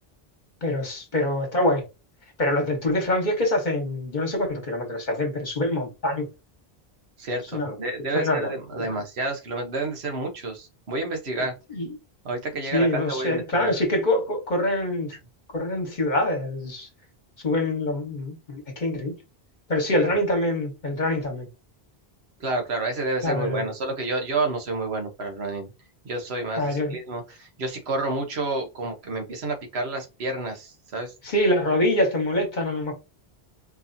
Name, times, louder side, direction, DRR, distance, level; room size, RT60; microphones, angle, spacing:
voice 1, 0.6-1.8 2.4-6.3 7.5-7.8 8.1-8.5 8.8-8.9 11.7-11.9 12.7-15.1 15.5-16.9 17.4-19.2 19.7-21.5 23.2-23.7 26.6-27.0 31.2-32.9, left 1 dB, 50° left, 1.3 m, -25 dB
voice 2, 7.2-11.5 12.2-13.7 19.9-20.4 22.4-25.7 26.0-31.1, right 2 dB, 85° right, 1.3 m, -30 dB
4.6 x 2.7 x 2.7 m
omnidirectional pair, 1.1 m